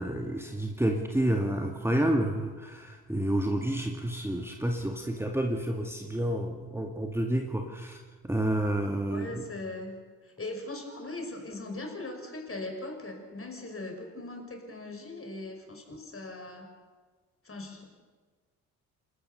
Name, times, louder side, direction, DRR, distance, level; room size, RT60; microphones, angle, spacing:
voice 1, 0.0-9.4, right 1 dB, 5° right, 3 dB, 2.1 m, -29 dB
voice 2, 9.1-9.9 10.4-16.7 17.5-17.8, left 2 dB, 30° left, 4 dB, 5.8 m, -39 dB
28.5 x 14.0 x 6.9 m, 1.5 s
hypercardioid pair, 45°, 44 cm